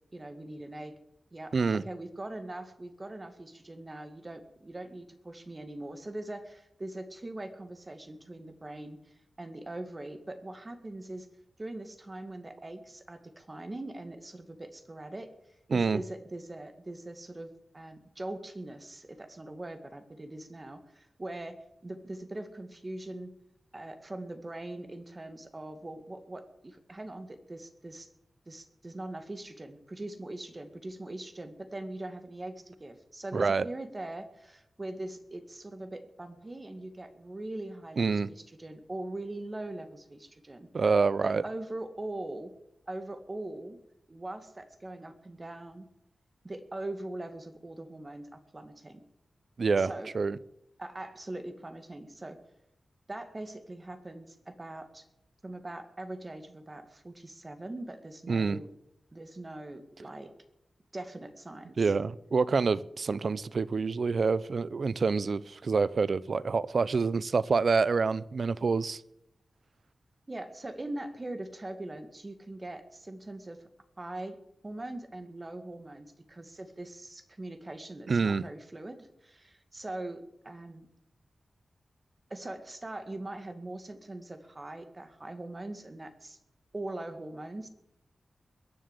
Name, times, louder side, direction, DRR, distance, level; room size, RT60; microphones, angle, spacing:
voice 1, 0.1-1.0 1.3-11.3 11.6-15.3 15.7-23.4 23.7-28.1 28.5-40.7 41.2-42.5 42.9-43.8 44.1-45.9 46.4-49.0 49.8-50.1 50.8-52.4 53.1-55.0 55.4-58.7 59.1-60.3 60.9-61.9 70.3-73.7 74.0-74.4 74.6-80.9 82.3-86.4 86.7-87.7, right 1 dB, 30° right, 8 dB, 2.0 m, -41 dB
voice 2, 1.5-1.8 15.7-16.0 33.3-33.7 38.0-38.3 40.7-41.4 49.6-50.4 58.3-58.6 61.8-69.0 78.1-78.4, right 4 dB, 60° right, 18 dB, 0.6 m, -27 dB
21.5 x 7.7 x 8.2 m, 0.82 s
wide cardioid pair, 85°, 0 cm